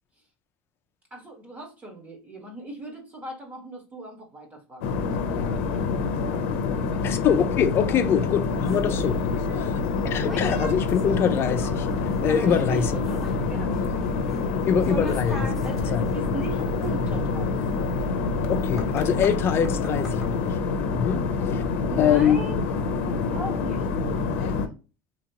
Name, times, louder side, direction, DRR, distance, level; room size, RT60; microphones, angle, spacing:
voice 1, 1.1-7.0 7.8-8.0 8.6-8.8 12.3-15.1 15.6-17.9 21.8-24.5, right 2 dB, 25° right, 1.2 m, -39 dB
sound 1, 4.8-24.7, left 4 dB, 80° left, 0.5 m, -26 dB
voice 2, 7.0-9.1 9.5-11.9 12.2-12.9 14.7-15.5 15.9-16.1 18.5-20.6 20.9-21.6 22.0-22.4, left 8 dB, 35° left, 0.4 m, -24 dB
sound 2, 8.6-20.3, equal, ahead, 0.9 m, -41 dB
2.9 x 2.8 x 2.7 m
supercardioid pair, 135°, 7 cm